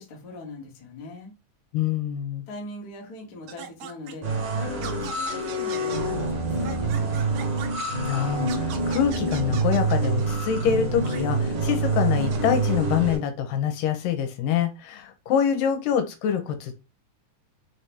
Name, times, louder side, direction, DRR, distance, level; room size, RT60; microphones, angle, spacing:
voice 1, 0.0-1.3 2.5-4.3 4.5-7.6, left 2 dB, 50° left, 0 dB, 1.1 m, -40 dB
voice 2, 1.7-2.4 8.1-16.7, left 8 dB, 90° left, 8 dB, 2.4 m, -25 dB
sound 1, 3.5-4.1 4.8-6.0 6.6-7.8 8.5-10.3 11.0-11.2 12.1-12.4, right 8 dB, 85° right, 2.4 m, -39 dB
sound 2, 4.2-13.1, right 3 dB, 50° right, 1.8 m, -26 dB
5.6 x 2.8 x 3.4 m, 0.27 s
omnidirectional pair, 3.9 m